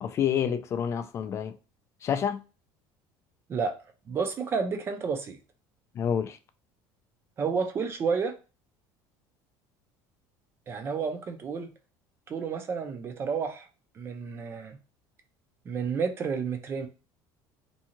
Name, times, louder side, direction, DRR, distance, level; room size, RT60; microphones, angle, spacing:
voice 1, 0.0-1.5 2.0-2.4 6.0-6.4, left 8 dB, 30° left, 0.3 m, -28 dB
voice 2, 4.1-5.4 7.4-8.3 10.7-11.7 12.3-13.7 14.0-14.8 15.7-16.9, right 5 dB, 25° right, 0.5 m, -30 dB
2.7 x 2.3 x 2.8 m
cardioid pair, 150°, 9 cm